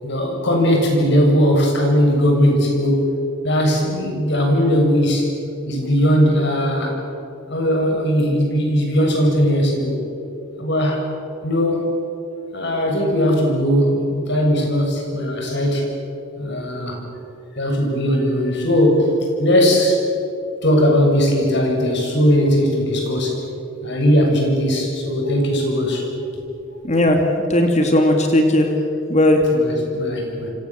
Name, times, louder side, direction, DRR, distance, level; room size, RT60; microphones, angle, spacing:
voice 1, 0.0-3.2 3.4-5.4 5.7-7.0 7.5-10.0 10.6-11.0 11.4-11.9 12.5-15.9 16.4-17.0 17.6-20.0 20.6-23.4 23.8-26.1 29.5-30.5, equal, 60° left, 1 dB, 7.4 m, -18 dB
voice 2, 26.8-28.7 29.1-29.4, left 1 dB, 35° left, 3 dB, 2.7 m, -16 dB
28.5 x 26.0 x 7.7 m, 2.8 s
head